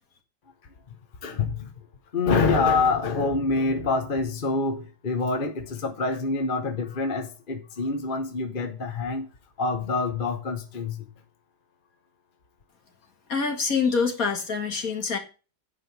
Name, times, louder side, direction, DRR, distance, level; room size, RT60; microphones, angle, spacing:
voice 1, 1.2-1.7 2.1-9.3 9.6-11.1, left 3 dB, 35° left, 1.0 m, -26 dB
voice 2, 13.3-15.2, left 5 dB, 50° left, 2.3 m, -25 dB
8.6 x 5.5 x 8.0 m
omnidirectional pair, 2.0 m